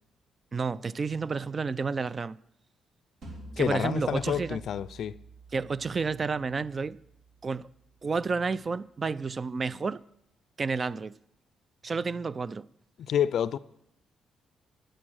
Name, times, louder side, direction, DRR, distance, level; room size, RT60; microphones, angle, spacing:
voice 1, 0.5-2.4 3.6-4.6 5.5-7.0 7.4-7.7 8.0-10.0 10.6-11.1 11.8-12.7, right 4 dB, 35° right, 0.3 m, -30 dB
sound 1, 3.2-8.3, right 2 dB, 65° right, 2.9 m, -49 dB
voice 2, 3.6-5.2 13.0-13.6, left 9 dB, 65° left, 0.4 m, -28 dB
10.0 x 8.6 x 6.3 m
cardioid pair, 90°, 0 cm